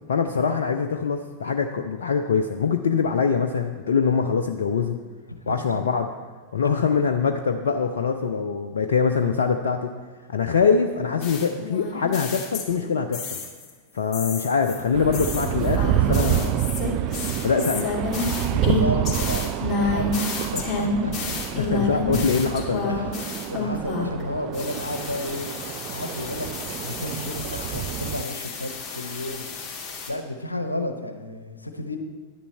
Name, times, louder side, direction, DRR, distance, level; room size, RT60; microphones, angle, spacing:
voice 1, 0.1-5.0 5.5-6.1 6.5-9.9 10.3-13.4 13.9-16.6 17.4-17.9 21.5-22.9, left 5 dB, 65° left, 6 dB, 0.5 m, -23 dB
voice 2, 5.3-5.8 17.2-17.3 18.5-21.2 22.9-25.5 25.9-29.4 30.1-32.0, left 1 dB, 85° left, 7 dB, 0.9 m, -32 dB
sound 1, 11.2-13.7 14.1-24.2 24.5-30.1, left 3 dB, 25° left, 2.4 m, -30 dB
sound 2, 14.9-28.2, right 13 dB, 40° right, 0.4 m, -28 dB
11.0 x 9.9 x 4.5 m, 1.4 s
figure-of-eight pair, 90°, 0 cm